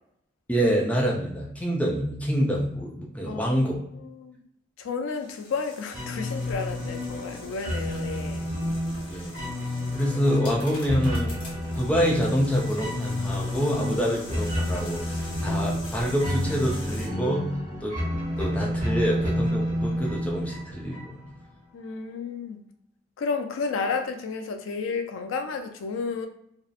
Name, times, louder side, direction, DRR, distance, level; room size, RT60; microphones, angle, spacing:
voice 1, 0.5-3.8 9.1-9.3 9.9-11.4 11.8-17.5 17.8-18.0 18.4-21.2, equal, 5° left, -2 dB, 0.4 m, -26 dB
voice 2, 3.3-3.6 3.9-4.4 4.8-8.5 21.7-22.6 23.2-26.3, left 4 dB, 90° left, 5 dB, 0.4 m, -32 dB
sound 1, 5.1-17.1, left 1 dB, 25° left, 0.9 m, -45 dB
sound 2, 5.9-21.4, left 1 dB, 40° right, 0.9 m, -30 dB
2.7 x 2.0 x 2.3 m, 0.72 s
head